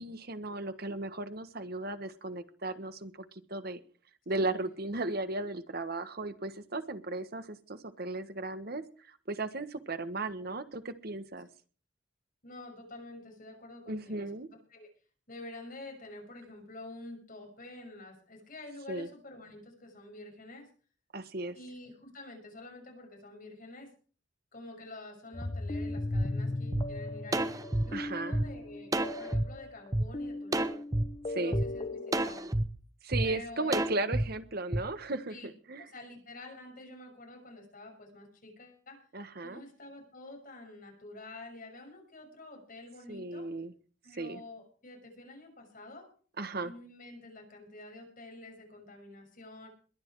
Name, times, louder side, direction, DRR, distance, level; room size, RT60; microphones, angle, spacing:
voice 1, 0.0-3.8 4.3-11.5 13.9-14.5 18.9-19.1 21.1-21.6 27.9-28.4 31.3-31.6 33.0-35.9 39.1-39.6 43.1-43.7 44.2-44.4 46.4-46.7, right 2 dB, 55° right, 11 dB, 1.5 m, -36 dB
voice 2, 12.4-14.3 14.7-14.9 15.3-20.7 21.5-23.9 24.5-27.5 27.8-30.8 31.4-32.5 33.2-33.9 35.3-35.5 35.8-39.0 39.4-43.5 44.0-46.1 46.6-49.7, left 2 dB, 50° left, 3 dB, 6.3 m, -48 dB
sound 1, 25.3-32.2, left 2 dB, 30° left, 1.3 m, -38 dB
sound 2, 26.1-26.2 26.7-26.8 27.3-28.4 28.9-29.4 29.9-30.0 30.5-31.0 31.5-31.6 32.1-32.6 33.1-33.3 33.7-34.2 34.7-34.8, right 1 dB, 20° right, 1.0 m, -29 dB
22.0 x 9.9 x 4.8 m, 0.40 s
head